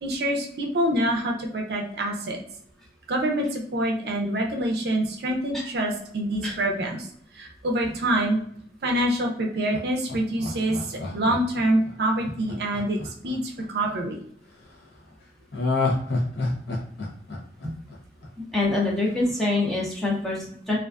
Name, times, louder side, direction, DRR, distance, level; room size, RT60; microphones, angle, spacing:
voice 1, 0.0-2.4 3.1-7.1 7.3-8.4 8.8-13.0 13.2-14.2, right 1 dB, 65° right, 1 dB, 0.4 m, -26 dB
Laughter, 9.7-13.9 15.5-18.5 18.9-19.0, left 2 dB, 75° left, 0.6 m, -29 dB
voice 2, 18.4-20.8, left 2 dB, ahead, -4 dB, 0.5 m, -25 dB
2.4 x 2.3 x 2.3 m, 0.63 s
head